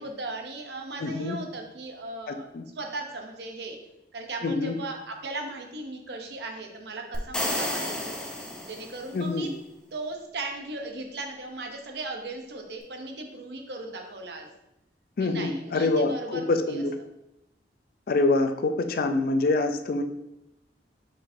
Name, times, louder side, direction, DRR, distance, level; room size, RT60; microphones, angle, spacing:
voice 1, 0.0-2.5 2.8-3.8 4.1-8.1 8.7-9.5 9.9-14.5 15.2-16.8, right 2 dB, 65° right, 3 dB, 0.7 m, -37 dB
voice 2, 1.0-1.4 2.3-2.6 4.4-4.8 9.1-9.5 15.2-16.9 18.1-20.0, left 3 dB, 55° left, 8 dB, 0.4 m, -25 dB
sound 1, 7.1-9.2, left 1 dB, 5° left, 0.6 m, -31 dB
4.6 x 4.3 x 2.6 m, 0.87 s
head